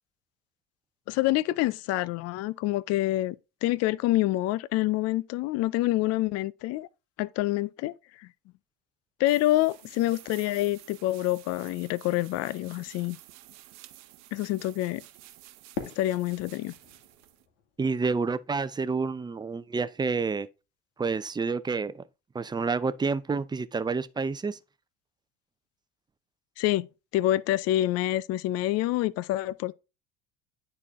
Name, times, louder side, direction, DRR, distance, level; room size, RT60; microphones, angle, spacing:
voice 1, 1.1-3.4 3.6-6.9 7.2-7.9 8.2-8.3 9.2-13.2 14.3-15.0 16.0-16.7 26.6-26.9 27.1-29.7, left 16 dB, 60° left, 0.5 m, -27 dB
sound 1, 9.2-17.4, right 15 dB, 70° right, 1.1 m, -51 dB
Fireworks, 15.7-18.8, left 7 dB, 85° left, 2.3 m, -42 dB
voice 2, 17.8-20.5 21.0-22.0 22.3-24.6, right 4 dB, 15° right, 0.6 m, -29 dB
9.7 x 4.2 x 3.6 m
supercardioid pair, 95°, 29 cm